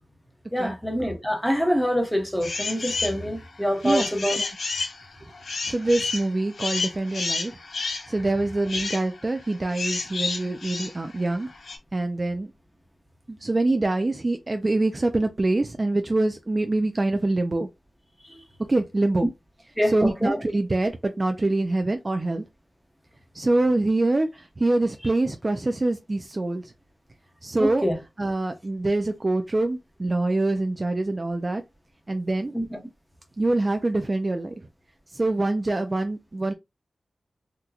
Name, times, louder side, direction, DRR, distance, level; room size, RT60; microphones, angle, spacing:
voice 1, 0.5-4.4 19.8-20.3 27.6-28.0 32.5-32.8, equal, ahead, 0.9 m, -25 dB
sound 1, 2.4-3.2 3.6-11.8, left 3 dB, 80° left, 1.0 m, -31 dB
voice 2, 5.6-7.5 8.1-11.5 11.9-12.5 13.3-17.7 18.7-19.3 19.9-22.4 23.3-26.6 27.4-27.9 28.2-31.6 32.1-32.5 33.4-34.5 35.1-36.5, right 2 dB, 30° right, 0.4 m, -25 dB
3.8 x 2.2 x 2.8 m
wide cardioid pair, 100°, 0 cm